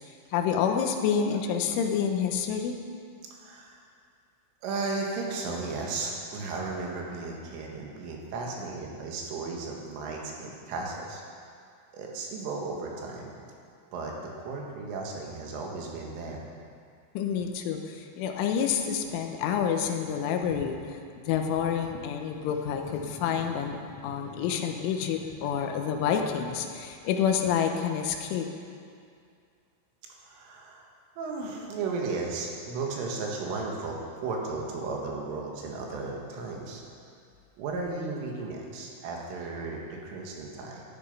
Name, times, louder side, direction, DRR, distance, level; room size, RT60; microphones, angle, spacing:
voice 1, 0.3-2.8 17.1-21.0 21.3-28.5, left 7 dB, 90° left, 4 dB, 3.4 m, -28 dB
voice 2, 3.4-3.8 4.6-11.2 11.9-13.4 13.9-16.4 30.2-30.9 31.2-36.8 37.6-40.8, right 3 dB, 85° right, -1 dB, 4.3 m, -35 dB
14.5 x 11.0 x 5.5 m, 2.3 s
omnidirectional pair, 5.6 m